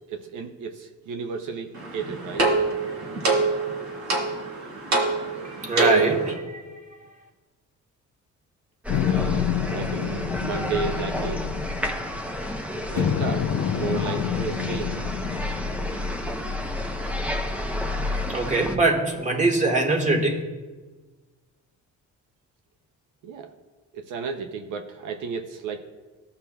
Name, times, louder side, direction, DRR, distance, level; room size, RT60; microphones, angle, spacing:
voice 1, 0.1-2.6 9.0-11.4 12.9-15.0 23.2-23.5 23.9-25.9, right 5 dB, 85° right, 5 dB, 0.7 m, -33 dB
sound 1, 1.7-6.3, right 3 dB, 65° right, 2.0 m, -25 dB
voice 2, 5.4-6.6 18.3-20.4, right 2 dB, 25° right, 2 dB, 1.5 m, -23 dB
sound 2, 8.8-18.8, left 1 dB, 5° right, 0.7 m, -30 dB
sound 3, 8.9-12.5 13.0-16.3, left 9 dB, 65° left, 0.5 m, -28 dB
15.0 x 5.6 x 2.3 m, 1.3 s
cardioid pair, 90°, 30 cm